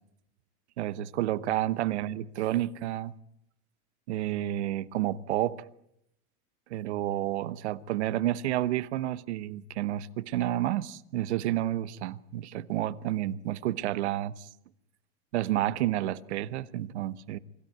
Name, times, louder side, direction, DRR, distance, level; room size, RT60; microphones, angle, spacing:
voice 1, 0.8-3.1 4.1-5.6 6.7-14.5 15.3-17.4, right 13 dB, 90° right, 1.0 m, -30 dB
25.5 x 13.5 x 9.4 m
supercardioid pair, 150°, 33 cm